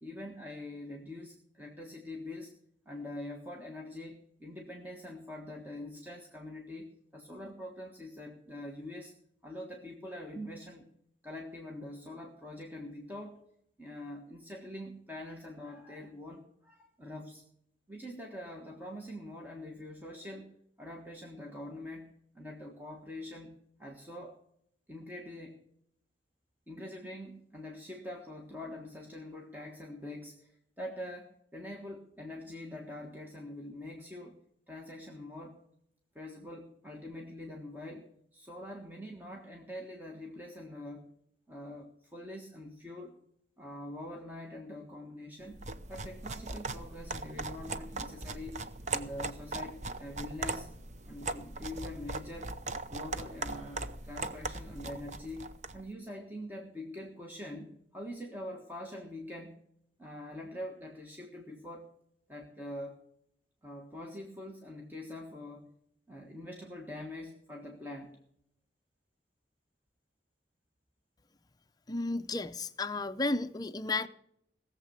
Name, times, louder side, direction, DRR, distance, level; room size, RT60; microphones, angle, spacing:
voice 1, 0.0-2.5 2.8-9.1 9.4-10.9 11.2-13.4 13.8-17.4 17.9-20.5 20.8-24.4 24.9-25.6 26.7-34.4 34.7-35.6 36.1-41.1 41.5-43.1 43.6-45.6 45.9-48.6 48.9-50.7 51.1-52.5 52.9-59.6 60.0-61.9 62.3-63.0 63.6-65.7 66.1-68.2, left 1 dB, 10° right, 0 dB, 1.4 m, -44 dB
sound 1, 45.5-55.8, right 3 dB, 40° right, 0.8 m, -39 dB
voice 2, 71.9-74.1, left 2 dB, 20° left, 11 dB, 0.6 m, -33 dB
18.0 x 7.4 x 6.8 m, 0.72 s
head